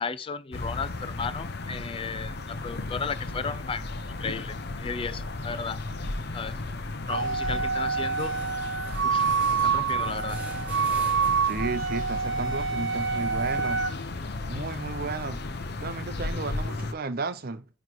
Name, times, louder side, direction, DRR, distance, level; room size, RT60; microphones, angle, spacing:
voice 1, 0.0-5.8 6.3-6.6 7.1-8.4 9.0-9.4 9.6-10.4, left 5 dB, 30° left, 0.4 m, -34 dB
sound 1, 0.5-16.9, left 2 dB, 55° left, 0.8 m, -35 dB
Wind instrument woodwind instrument, 7.1-13.9, right 5 dB, 70° right, 1.2 m, -27 dB
sound 2, 7.4-11.9 12.2-14.4, right 1 dB, 10° right, 2.9 m, -48 dB
voice 2, 11.4-13.8 14.5-15.4 15.8-17.7, right 3 dB, 50° right, 0.7 m, -33 dB
9.3 x 3.3 x 4.6 m
head